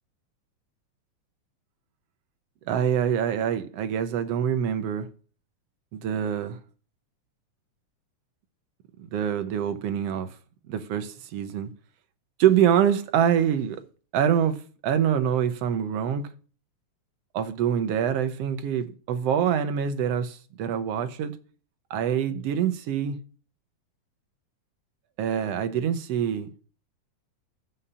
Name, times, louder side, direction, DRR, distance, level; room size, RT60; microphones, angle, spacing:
voice 1, 2.7-5.1 5.9-6.6 9.0-10.3 10.7-11.7 12.4-13.8 14.1-14.6 14.8-16.3 17.3-21.3 21.9-23.2 25.2-26.5, right 9 dB, 70° right, 1.6 m, -25 dB
9.8 x 5.8 x 6.7 m
omnidirectional pair, 3.4 m